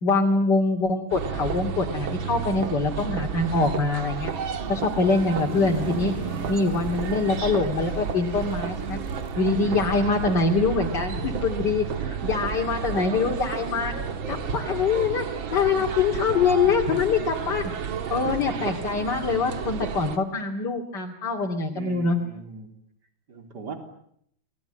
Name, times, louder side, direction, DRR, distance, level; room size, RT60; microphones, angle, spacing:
voice 1, 0.0-4.3 4.7-6.1 6.5-9.0 9.4-11.9 12.2-13.9 14.3-17.7 18.1-22.2, left 4 dB, 50° left, 2 dB, 3.0 m, -24 dB
sound 1, 1.1-20.2, right 7 dB, 65° right, 2.3 m, -32 dB
sound 2, 2.5-15.7, right 2 dB, 15° left, 4.7 m, -43 dB
voice 2, 2.8-4.0 4.6-5.3 6.6-6.8 7.4-7.5 9.6-9.9 11.9-12.4 12.7-13.0 15.5-15.9 16.6-17.0 17.4-17.6 18.1-18.8 21.7-22.7 23.3-23.7, right 4 dB, 50° right, 5 dB, 4.1 m, -40 dB
29.5 x 21.0 x 8.9 m, 0.71 s
omnidirectional pair, 2.3 m